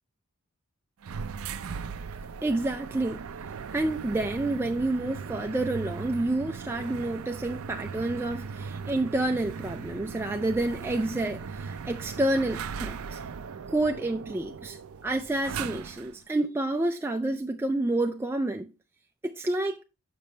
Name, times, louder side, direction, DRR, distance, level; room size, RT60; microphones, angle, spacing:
sound 1, 1.0-16.2, right 5 dB, 70° right, 0.5 m, -38 dB
voice 1, 2.4-3.3 3.7-13.2 13.7-18.7 19.2-19.8, right 2 dB, 10° right, 0.3 m, -29 dB
6.9 x 6.0 x 3.2 m
head